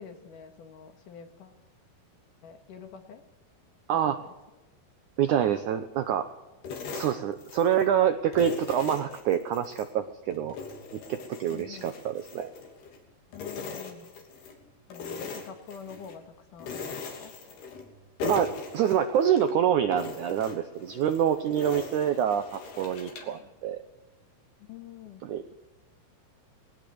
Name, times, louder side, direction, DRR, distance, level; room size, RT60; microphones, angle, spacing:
voice 1, 0.0-1.6 2.4-3.2 4.1-4.3 11.5-11.9 13.3-14.1 14.9-17.3 23.4-23.5 24.7-25.2, left 7 dB, 60° left, 7 dB, 2.7 m, -46 dB
voice 2, 3.9-4.2 5.2-6.3 6.9-10.6 10.9-12.5 18.2-23.8 25.2-25.5, right 9 dB, 75° right, 9 dB, 1.8 m, -26 dB
sound 1, 6.6-7.9 8.3-9.9 10.3-13.0 13.3-14.6 14.9-16.2 16.6-17.9 18.2-19.5 19.9-23.4, left 4 dB, 80° left, 5.1 m, -40 dB
20.5 x 19.0 x 7.9 m, 1.1 s
omnidirectional pair, 4.7 m